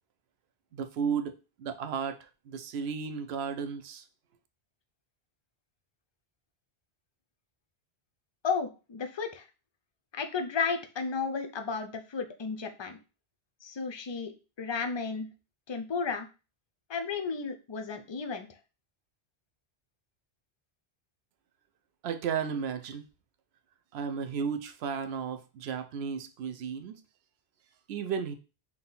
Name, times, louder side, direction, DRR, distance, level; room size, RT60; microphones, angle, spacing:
voice 1, 0.7-1.3 1.6-4.0 22.0-23.0 23.9-26.9 27.9-28.3, right 6 dB, 75° right, 8 dB, 0.8 m, -34 dB
voice 2, 8.4-9.5 10.1-13.0 13.6-14.3 14.6-15.3 15.7-16.3 16.9-18.5, left 5 dB, 45° left, 6 dB, 0.3 m, -33 dB
3.8 x 2.9 x 3.9 m, 0.32 s
omnidirectional pair, 1.1 m